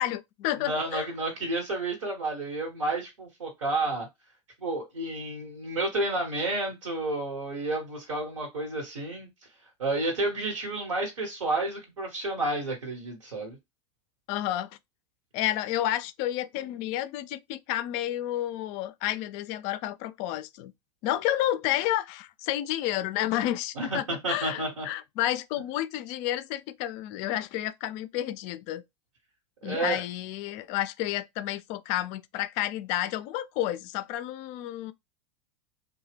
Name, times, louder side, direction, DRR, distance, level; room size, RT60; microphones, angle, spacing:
voice 1, 0.0-1.1 14.3-14.7 15.3-20.7 21.0-28.8 29.6-34.9, left 13 dB, 50° left, 0.4 m, -30 dB
voice 2, 0.6-4.1 4.6-9.3 9.8-13.6 23.7-24.9 29.6-30.0, right 2 dB, 85° right, 1.1 m, -30 dB
2.7 x 2.2 x 3.2 m
hypercardioid pair, 90°, 16 cm